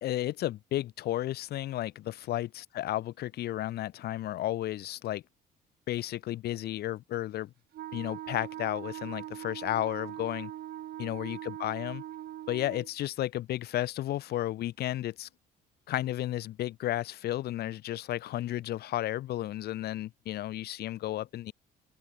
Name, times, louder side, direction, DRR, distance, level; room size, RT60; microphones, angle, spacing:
voice 1, 0.0-5.2 5.9-7.5 7.9-10.5 11.0-12.0 12.5-15.3 15.9-21.5, left 14 dB, 70° left, 3.5 m, -33 dB
Wind instrument woodwind instrument, 7.7-12.9, right 13 dB, 65° right, 3.1 m, -41 dB
cardioid pair, 110°, 17 cm